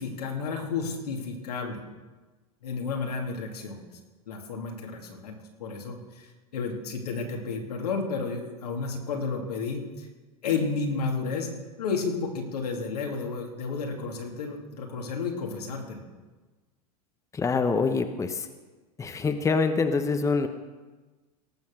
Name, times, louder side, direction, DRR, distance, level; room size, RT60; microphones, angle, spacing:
voice 1, 0.0-1.8 2.6-3.8 4.3-5.3 5.6-10.1 10.4-11.5 11.8-16.0, left 4 dB, 85° left, 1 dB, 2.8 m, -32 dB
voice 2, 17.3-18.5 19.0-20.5, left 4 dB, 15° left, 8 dB, 0.9 m, -25 dB
18.0 x 7.0 x 6.6 m, 1.3 s
hypercardioid pair, 105°, 20 cm